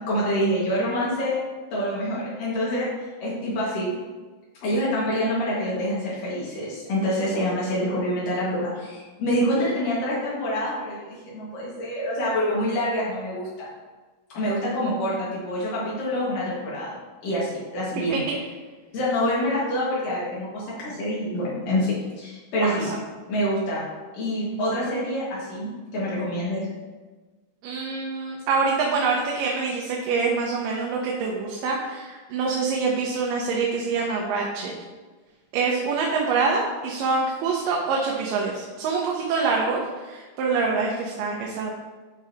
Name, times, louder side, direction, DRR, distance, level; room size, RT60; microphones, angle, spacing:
voice 1, 0.1-1.4 1.7-3.9 4.6-13.7 14.3-16.9 17.2-18.2 18.9-22.9 23.3-23.8 24.1-26.7, equal, 80° left, -7 dB, 3.4 m, -26 dB
voice 2, 27.6-34.7 35.5-41.7, right 4 dB, 85° right, -1 dB, 2.5 m, -25 dB
11.5 x 5.0 x 2.8 m, 1.3 s
omnidirectional pair, 3.8 m